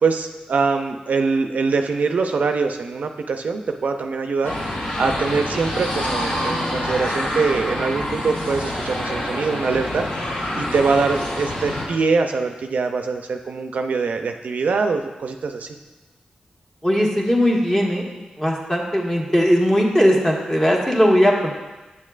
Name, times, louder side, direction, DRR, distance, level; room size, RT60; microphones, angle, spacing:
voice 1, 0.0-4.5 5.0-10.1 10.6-15.7, right 4 dB, 70° right, 6 dB, 0.4 m, -23 dB
sound 1, 4.4-11.8, left 1 dB, 70° left, 2.0 m, -26 dB
voice 2, 16.8-18.1 18.4-21.5, equal, 20° left, -2 dB, 1.4 m, -18 dB
8.5 x 6.4 x 2.4 m, 1.1 s
cardioid pair, 50°, 3 cm